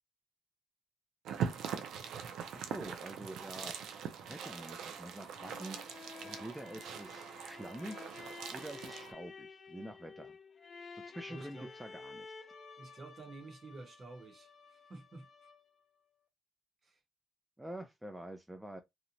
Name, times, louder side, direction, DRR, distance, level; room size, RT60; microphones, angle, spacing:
sound 1, 1.2-9.1, right 7 dB, 80° right, 0.4 m, -42 dB
voice 1, 2.5-3.8 4.2-5.8 6.2-8.1 8.5-10.3 10.9-12.3 17.6-18.8, right 1 dB, 5° right, 0.4 m, -46 dB
sound 2, 5.0-15.8, left 4 dB, 45° left, 0.6 m, -52 dB
voice 2, 11.3-11.7 12.8-15.3 16.8-17.0, right 2 dB, 40° right, 0.9 m, -50 dB
2.9 x 2.0 x 2.5 m
cardioid pair, 90°, 0 cm